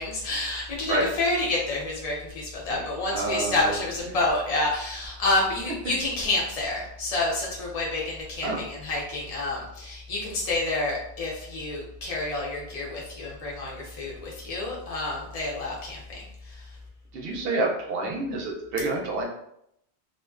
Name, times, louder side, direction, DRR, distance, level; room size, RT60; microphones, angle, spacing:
voice 1, 0.0-16.8, left 2 dB, 40° left, -3 dB, 0.6 m, -29 dB
voice 2, 3.1-3.8 4.1-4.2 8.4-8.6 17.1-19.2, right 2 dB, 65° right, 0 dB, 0.7 m, -28 dB
2.5 x 2.1 x 2.3 m, 0.76 s
omnidirectional pair, 1.1 m